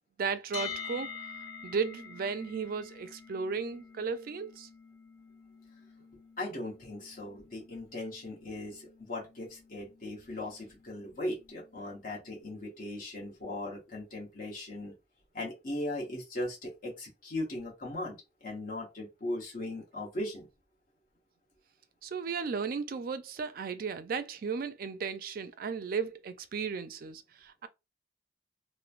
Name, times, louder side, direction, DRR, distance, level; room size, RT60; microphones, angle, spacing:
voice 1, 0.2-1.1 1.6-4.7 22.0-27.7, right 5 dB, 55° right, 0.3 m, -35 dB
sound 1, 0.5-12.4, left 6 dB, 80° left, 0.8 m, -48 dB
voice 2, 6.4-14.9 15.3-20.5, left 1 dB, 50° left, 1.0 m, -38 dB
3.0 x 2.1 x 2.4 m
head